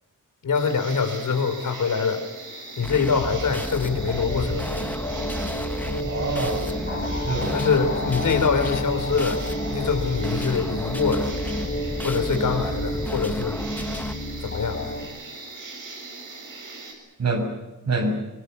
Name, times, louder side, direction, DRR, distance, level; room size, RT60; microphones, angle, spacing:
voice 1, 0.4-2.2 2.8-4.7 7.5-11.4 12.0-13.6 14.4-14.9, left 5 dB, 75° left, 8 dB, 4.0 m, -24 dB
sound 1, 0.5-16.9, right 3 dB, 75° right, 7.3 m, -40 dB
sound 2, 2.8-14.1, left 1 dB, 5° left, 1.2 m, -32 dB
sound 3, 3.6-15.0, left 1 dB, 40° left, 4.1 m, -31 dB
voice 2, 6.0-7.6 17.2-17.5 17.8-18.1, right 2 dB, 55° right, 5 dB, 6.4 m, -26 dB
25.0 x 24.0 x 7.0 m, 1.2 s
wide cardioid pair, 165°, 31 cm